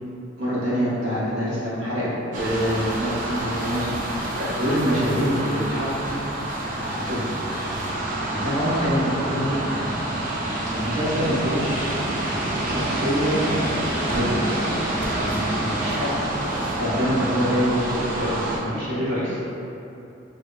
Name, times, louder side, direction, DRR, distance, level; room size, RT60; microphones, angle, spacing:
voice 1, 0.4-6.1 6.8-7.2 8.3-9.9 10.7-11.9 12.6-13.4 14.0-14.4 15.1-16.1 16.8-19.4, equal, 90° right, -10 dB, 1.1 m, -25 dB
sound 1, 2.3-18.6, right 1 dB, 40° right, 0.4 m, -27 dB
3.4 x 2.7 x 2.2 m, 2.8 s
head